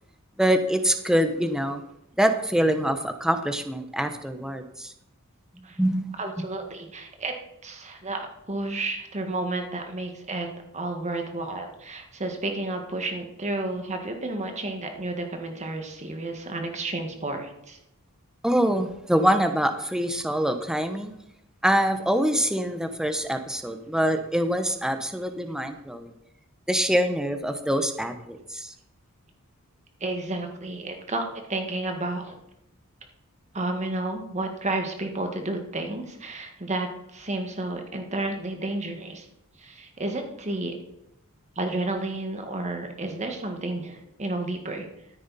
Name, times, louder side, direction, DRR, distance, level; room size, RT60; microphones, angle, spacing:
voice 1, 0.4-1.8 2.2-4.9 5.5-6.5 18.4-21.1 21.6-26.1 26.7-28.7, equal, 5° right, 7 dB, 0.9 m, -25 dB
voice 2, 6.2-7.3 7.6-10.5 10.7-17.8 30.0-32.3 33.5-39.3 39.6-40.8 41.5-44.9, right 2 dB, 30° right, 4 dB, 1.7 m, -31 dB
13.5 x 9.3 x 4.2 m, 0.83 s
head